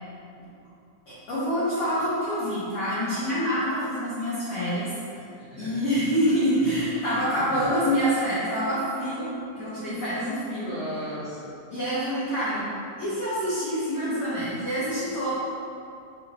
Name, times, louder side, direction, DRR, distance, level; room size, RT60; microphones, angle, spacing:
voice 1, 1.1-4.9 5.6-9.3 9.5-10.7 11.7-12.7 13.0-15.3, equal, 80° left, -11 dB, 1.2 m, -26 dB
voice 2, 5.1-5.8 7.1-7.6 10.5-11.5, equal, 55° left, -14 dB, 0.9 m, -37 dB
5.6 x 2.9 x 2.6 m, 2.6 s
omnidirectional pair, 3.7 m